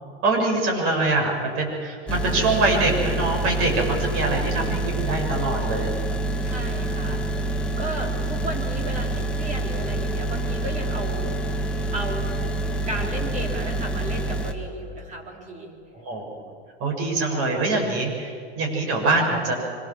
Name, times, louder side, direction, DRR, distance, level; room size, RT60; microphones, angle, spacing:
voice 1, 0.2-5.9 6.7-7.2 15.9-16.4 16.8-19.5, right 2 dB, 40° right, 1 dB, 7.0 m, -24 dB
sound 1, 2.1-14.5, right 2 dB, 5° left, 1.7 m, -27 dB
voice 2, 6.4-7.5 7.8-11.3 11.9-12.2 12.9-15.7, right 1 dB, 20° right, 1 dB, 4.1 m, -34 dB
25.0 x 22.5 x 7.5 m, 2.3 s
supercardioid pair, 140°, 35 cm